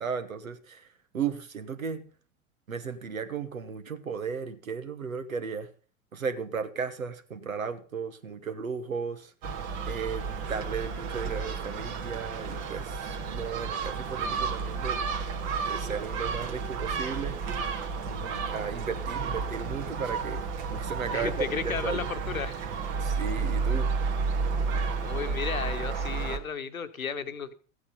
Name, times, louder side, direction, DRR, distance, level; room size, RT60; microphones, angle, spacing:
voice 1, 0.0-2.1 2.7-5.7 6.1-9.3 9.9-15.0 15.5-17.4 18.0-20.4 20.7-22.1 23.0-23.9, right 6 dB, 85° right, 12 dB, 1.3 m, -35 dB
Gull seagull, 9.4-26.4, right 5 dB, 45° right, 1.8 m, -31 dB
voice 2, 21.1-22.6 24.8-27.5, left 6 dB, 85° left, 10 dB, 1.1 m, -34 dB
14.0 x 8.5 x 5.5 m, 0.38 s
figure-of-eight pair, 85°, 40 cm